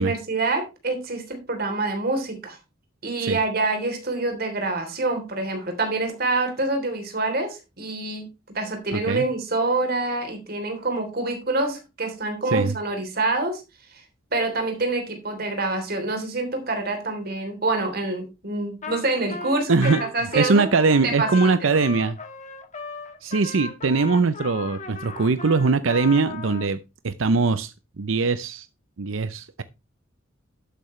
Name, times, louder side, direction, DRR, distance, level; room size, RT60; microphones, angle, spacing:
voice 1, 0.0-2.6 3.0-8.3 8.5-13.6 13.9-14.0 14.3-20.7 21.0-21.7, right 2 dB, 50° right, 3.3 m, -26 dB
voice 2, 8.9-9.3 12.5-12.7 19.7-20.0 20.3-22.2 23.2-28.7 29.0-29.6, right 4 dB, 75° right, 0.6 m, -22 dB
Trumpet, 18.8-19.0 19.3-26.7, left 5 dB, 35° left, 1.7 m, -35 dB
12.0 x 8.7 x 3.2 m
head